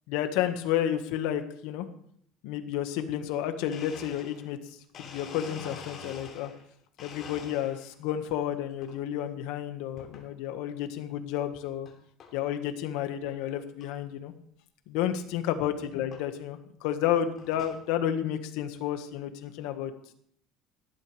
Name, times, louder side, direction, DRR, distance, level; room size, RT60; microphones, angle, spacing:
voice 1, 0.1-1.9 2.4-6.5 7.0-11.9 12.3-14.3 14.9-19.9, left 10 dB, 75° left, 8 dB, 1.5 m, -31 dB
Domestic sounds home sounds, 3.7-6.6 7.0-8.0 8.5-9.0 10.0-10.3 10.9-11.0 11.8-11.9 12.2-12.5 13.0-13.1 13.2-13.3 13.8-13.9 15.2-15.3 16.1-16.3 16.9-17.8, left 5 dB, 35° left, 3.0 m, -46 dB
17.5 x 12.0 x 3.4 m, 0.65 s
cardioid pair, 160°, 0 cm